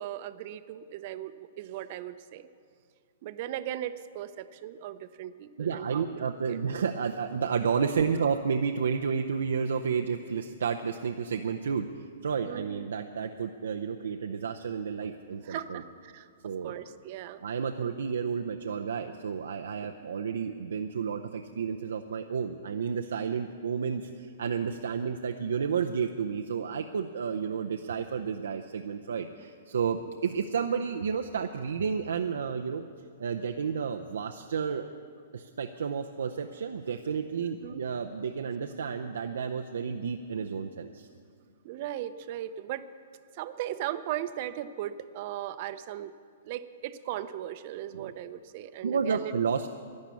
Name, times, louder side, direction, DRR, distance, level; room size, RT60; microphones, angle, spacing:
voice 1, 0.0-2.5 3.2-6.2 6.5-6.6 12.4-12.8 15.4-15.6 16.1-16.3 16.6-17.4 17.8-17.9 37.6-37.8 41.6-42.9 43.3-46.1 46.4-49.3, right 12 dB, 45° right, 13 dB, 0.6 m, -37 dB
voice 2, 5.6-15.8 16.4-16.7 17.4-32.9 33.2-34.9 35.3-41.1 47.9-48.1 48.8-49.7, right 6 dB, 85° right, 5 dB, 0.6 m, -31 dB
12.0 x 10.5 x 8.4 m, 2.2 s
hypercardioid pair, 145°, 0 cm